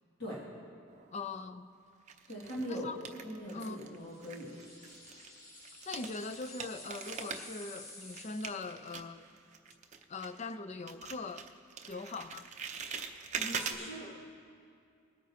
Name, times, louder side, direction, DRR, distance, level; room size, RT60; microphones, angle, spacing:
sound 1, 0.9-1.5 2.1-4.0 4.2-10.6 10.9-13.8, right 6 dB, 35° right, 0.6 m, -43 dB
voice 1, 1.1-1.7 2.7-3.0 3.5-3.8 5.9-9.3 10.1-11.5 11.9-12.5 13.8-14.2, left 3 dB, 30° left, 0.4 m, -41 dB
voice 2, 2.3-2.9 3.2-4.6 13.3-14.1, equal, 55° left, 2.2 m, -41 dB
sound 2, 4.0-8.8, left 2 dB, 75° left, 2.4 m, -52 dB
21.5 x 9.0 x 2.8 m
head